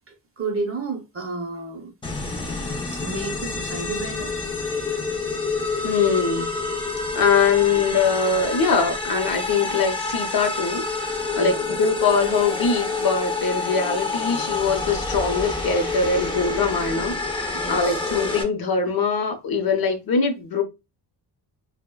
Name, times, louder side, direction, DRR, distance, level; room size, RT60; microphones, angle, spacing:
voice 1, 0.1-1.9 2.9-4.3 11.4-11.7 17.5-18.0, right 3 dB, 35° right, 0.6 m, -31 dB
sound 1, 2.0-18.4, left 3 dB, 15° left, 0.3 m, -28 dB
voice 2, 5.8-6.5 7.1-20.6, left 5 dB, 55° left, 0.6 m, -22 dB
3.2 x 2.1 x 2.2 m
wide cardioid pair, 160°, 42 cm